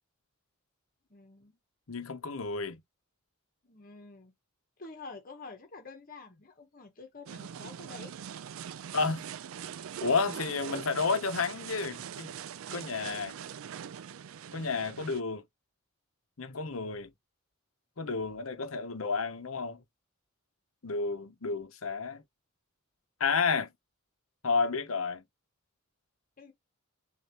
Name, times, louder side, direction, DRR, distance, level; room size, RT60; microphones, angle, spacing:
voice 1, 1.1-1.6 3.6-4.3 4.8-8.1 26.4-26.5, left 3 dB, 40° left, 1.1 m, -48 dB
voice 2, 1.9-2.8 8.9-9.2 10.0-12.3 12.7-13.4 14.5-15.4 16.4-17.1 18.0-19.8 20.8-22.2 23.2-23.7 24.4-25.2, left 4 dB, 80° left, 0.9 m, -31 dB
sound 1, 7.3-15.2, right 8 dB, 75° right, 0.4 m, -42 dB
6.5 x 2.6 x 3.0 m
head